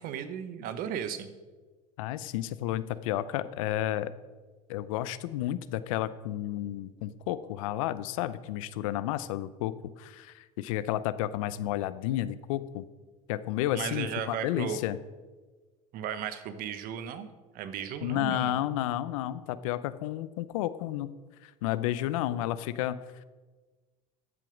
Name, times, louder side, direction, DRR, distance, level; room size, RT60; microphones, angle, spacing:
voice 1, 0.0-1.3 13.7-14.8 15.9-17.3 17.5-18.6, right 8 dB, 60° right, 11 dB, 1.2 m, -35 dB
voice 2, 2.0-4.1 4.7-12.9 13.3-15.0 18.0-21.2 21.4-23.2, left 13 dB, 80° left, 15 dB, 0.6 m, -32 dB
13.0 x 7.6 x 5.2 m, 1.3 s
hypercardioid pair, 85°, 17 cm